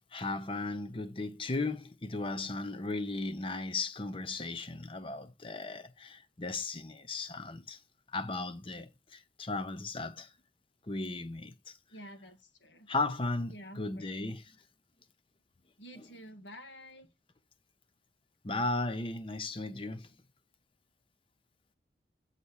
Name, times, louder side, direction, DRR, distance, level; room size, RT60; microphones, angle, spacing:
voice 1, 0.1-7.8 8.1-10.3 10.9-11.8 12.9-14.5 18.4-20.1, left 3 dB, 30° left, 0.7 m, -36 dB
voice 2, 11.9-12.9 13.5-14.1 15.8-17.1, equal, 75° left, 1.5 m, -50 dB
8.4 x 4.1 x 6.3 m
head